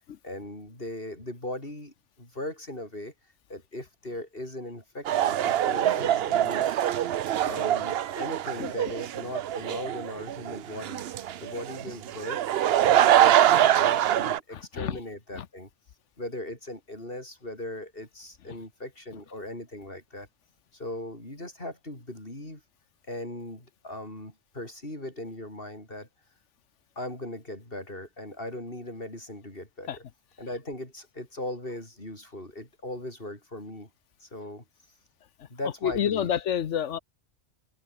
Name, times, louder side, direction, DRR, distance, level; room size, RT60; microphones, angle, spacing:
voice 1, 0.2-3.1 3.5-6.7 7.4-12.4 12.8-15.7 16.2-20.3 20.7-22.6 23.1-26.1 26.9-30.0 30.4-33.9 34.2-34.6 35.5-36.3, left 1 dB, 50° left, 6.8 m, -39 dB
sound 1, 5.0-14.4, right 11 dB, 65° right, 0.8 m, -24 dB
voice 2, 14.5-15.0 15.4-15.5 29.9-30.0 35.8-37.0, left 9 dB, 90° left, 1.2 m, -28 dB
omnidirectional pair, 1.2 m